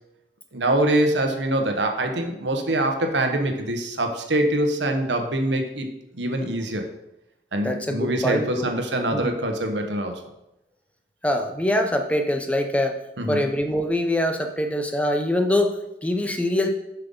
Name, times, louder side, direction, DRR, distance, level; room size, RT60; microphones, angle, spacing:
voice 1, 0.5-5.9 6.1-6.9 7.5-10.2 13.2-13.5, right 1 dB, 80° right, 4 dB, 1.2 m, -24 dB
voice 2, 7.6-8.7 9.1-9.3 11.2-13.0 13.3-16.7, left 1 dB, 5° left, 4 dB, 0.6 m, -24 dB
7.5 x 5.8 x 5.5 m, 0.88 s
head